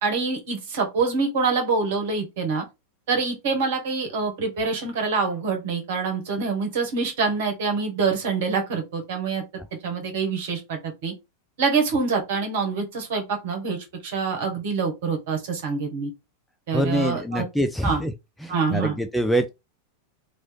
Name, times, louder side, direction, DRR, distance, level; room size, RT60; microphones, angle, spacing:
voice 1, 0.0-2.6 3.1-9.4 9.8-11.1 11.6-16.1 16.7-17.4 17.8-18.0 18.5-19.0, right 4 dB, 55° right, 1.3 m, -25 dB
voice 2, 16.7-18.1 18.4-19.5, equal, ahead, 0.4 m, -25 dB
3.1 x 2.6 x 3.6 m
figure-of-eight pair, 90°, 0 cm